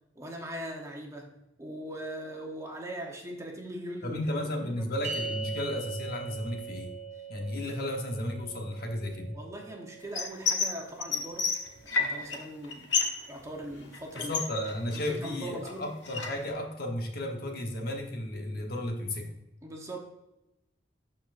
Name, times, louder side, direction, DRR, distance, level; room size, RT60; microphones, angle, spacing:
voice 1, 0.1-4.9 9.3-11.5 11.8-12.9 13.3-14.3 14.9-15.9 19.6-20.0, right 1 dB, 15° right, 1 dB, 1.1 m, -40 dB
voice 2, 4.0-6.9 7.3-9.4 14.1-19.3, left 1 dB, 55° left, 2 dB, 1.2 m, -34 dB
sound 1, 5.0-11.6, right 4 dB, 40° right, 1.1 m, -41 dB
sound 2, 10.1-10.7 11.0-12.4 12.6-13.2 13.5-15.3 15.7-16.5, left 4 dB, 85° left, 1.3 m, -30 dB
12.0 x 4.4 x 2.6 m, 0.93 s
head